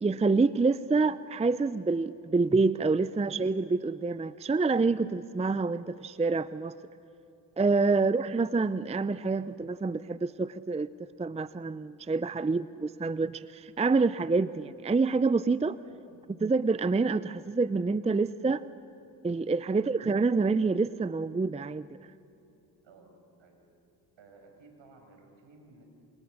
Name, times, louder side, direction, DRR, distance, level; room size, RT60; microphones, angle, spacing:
voice 1, 0.0-6.8 7.6-10.9 11.2-15.8 16.4-18.6 19.2-21.9, right 4 dB, 15° right, 16 dB, 0.6 m, -27 dB
voice 2, 15.8-16.2 22.8-23.1 23.4-23.6 24.2-25.8, right 3 dB, 65° right, 3 dB, 6.7 m, -56 dB
29.0 x 27.0 x 6.7 m, 2.9 s
supercardioid pair, 55°, 49 cm